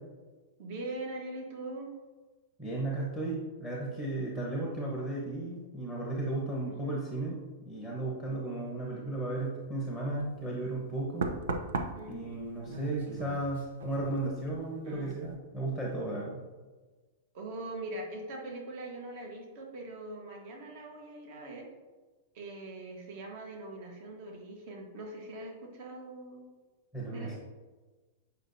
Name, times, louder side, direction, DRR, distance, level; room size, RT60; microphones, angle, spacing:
voice 1, 0.6-1.9 6.7-6.9 12.0-12.3 14.8-15.2 17.3-21.7 22.3-26.5 27.1-27.4, right 2 dB, 45° right, 1 dB, 1.3 m, -42 dB
voice 2, 2.6-7.4 7.6-11.3 12.1-16.4 26.9-27.4, right 2 dB, 10° right, -4 dB, 1.1 m, -35 dB
Knock, 10.1-10.4 11.2-14.7 14.9-15.3, right 3 dB, 85° right, 0.7 m, -38 dB
8.4 x 5.6 x 2.7 m, 1.3 s
supercardioid pair, 165°, 0 cm